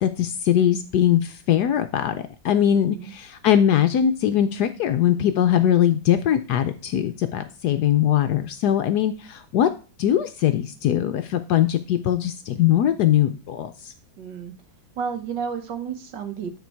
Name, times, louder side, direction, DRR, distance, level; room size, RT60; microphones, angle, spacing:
voice 1, 0.0-9.7 10.0-13.9, left 10 dB, 70° left, 9 dB, 1.0 m, -21 dB
voice 2, 2.7-3.1 14.2-14.5 15.0-16.6, right 7 dB, 65° right, 7 dB, 1.7 m, -32 dB
9.4 x 4.5 x 4.5 m, 0.34 s
omnidirectional pair, 2.1 m